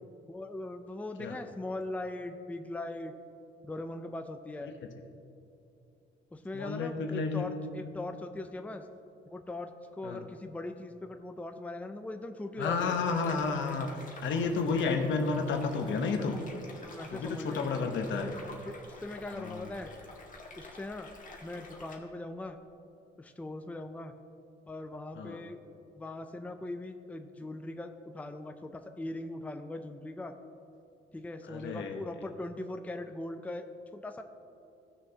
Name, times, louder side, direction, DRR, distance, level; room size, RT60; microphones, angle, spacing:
voice 1, 0.3-3.1 3.6-4.7 6.3-8.8 9.3-9.7 10.0-13.0 16.8-17.6 18.2-18.4 18.7-19.9 20.6-21.1 21.4-22.6 23.2-24.1 24.7-25.6 25.9-30.3 31.1-33.7 33.9-34.2, left 2 dB, 5° left, 7 dB, 0.5 m, -40 dB
voice 2, 6.5-7.5 10.0-10.2 12.6-13.9 14.2-16.4 17.1-18.3 19.3-19.7 25.1-25.4 31.5-32.0, left 4 dB, 70° left, 4 dB, 1.0 m, -31 dB
sound 1, 12.6-22.0, left 2 dB, 40° left, 1.6 m, -49 dB
16.0 x 6.3 x 2.9 m, 2.7 s
cardioid pair, 90°, 20 cm